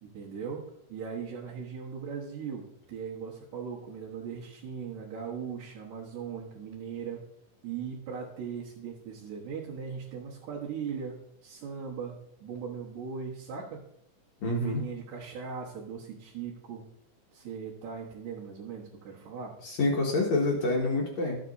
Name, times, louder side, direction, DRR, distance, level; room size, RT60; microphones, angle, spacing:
voice 1, 0.0-7.2 7.6-13.9 14.6-16.8 17.3-19.5, right 6 dB, 60° right, -6 dB, 2.4 m, -39 dB
voice 2, 14.4-14.8 19.6-21.4, left 2 dB, 60° left, -2 dB, 2.3 m, -27 dB
13.0 x 7.5 x 2.7 m, 0.73 s
omnidirectional pair, 4.0 m